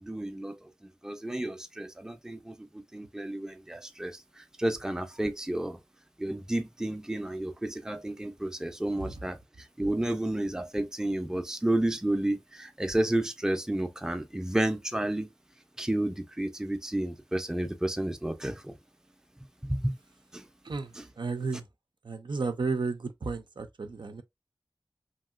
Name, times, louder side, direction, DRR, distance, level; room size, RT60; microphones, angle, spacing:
voice 1, 0.0-0.6 1.0-5.8 6.2-9.4 9.8-15.3 15.8-18.7 19.6-19.9 20.3-20.5 20.9-21.1, right 1 dB, 5° right, 0.5 m, -31 dB
voice 2, 21.2-21.6 22.0-24.2, right 4 dB, 70° right, 0.5 m, -33 dB
2.9 x 2.7 x 2.4 m
wide cardioid pair, 55°, 8 cm